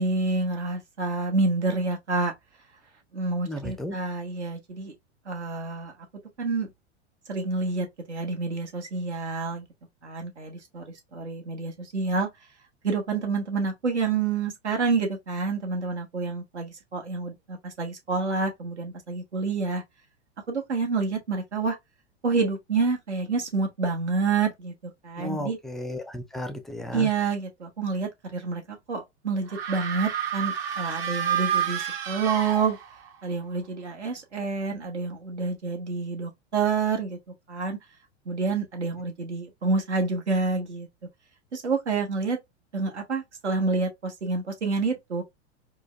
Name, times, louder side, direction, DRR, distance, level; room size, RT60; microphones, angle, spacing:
voice 1, 0.0-2.3 3.1-4.9 5.3-5.9 6.4-6.7 7.3-9.6 10.0-10.8 11.1-12.3 12.8-19.8 20.5-21.8 22.2-24.7 25.0-25.6 26.9-32.8 33.2-37.2 37.5-37.8 38.3-40.9 41.5-42.4 42.7-45.2, right 4 dB, 85° right, 1.3 m, -28 dB
voice 2, 3.4-4.0 25.2-27.1, left 1 dB, ahead, 0.4 m, -34 dB
sound 1, 29.5-33.2, right 8 dB, 60° right, 1.3 m, -29 dB
4.5 x 2.2 x 2.3 m
hypercardioid pair, 95°, 34 cm